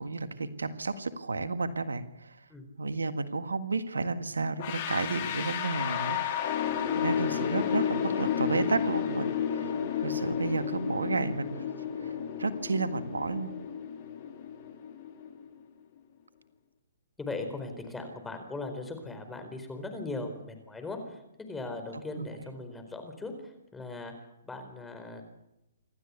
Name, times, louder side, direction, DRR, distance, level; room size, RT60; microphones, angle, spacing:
voice 1, 0.0-2.4 2.8-6.2 6.9-9.3 10.0-12.1 12.4-13.5 22.2-22.3, right 3 dB, 85° right, 10 dB, 1.7 m, -32 dB
sound 1, 4.6-15.5, left 8 dB, 45° left, 3.2 m, -32 dB
voice 2, 17.2-21.2 21.5-24.1 24.4-25.2, left 3 dB, 10° left, 6 dB, 4.3 m, -39 dB
27.0 x 13.0 x 8.3 m, 0.86 s
hypercardioid pair, 130°, 0 cm